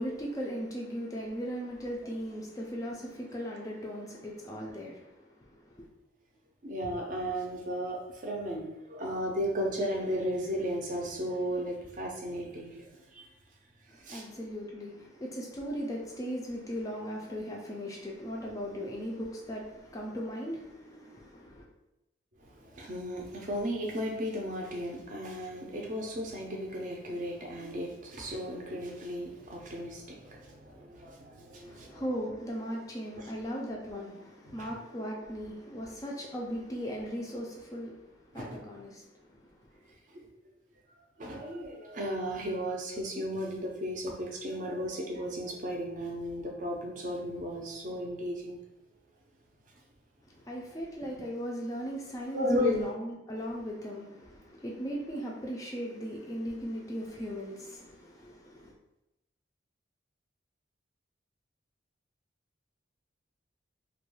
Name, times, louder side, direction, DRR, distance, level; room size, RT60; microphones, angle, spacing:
voice 1, 0.0-5.9 13.9-21.7 31.6-39.9 50.3-58.7, equal, 20° left, -2 dB, 0.3 m, -38 dB
voice 2, 6.6-13.2 13.9-14.2 22.4-32.0 33.2-33.3 34.5-34.7 38.3-38.6 40.1-40.3 41.2-48.6 52.3-52.8, equal, 45° right, 0 dB, 0.5 m, -35 dB
2.3 x 2.2 x 3.0 m, 0.90 s
head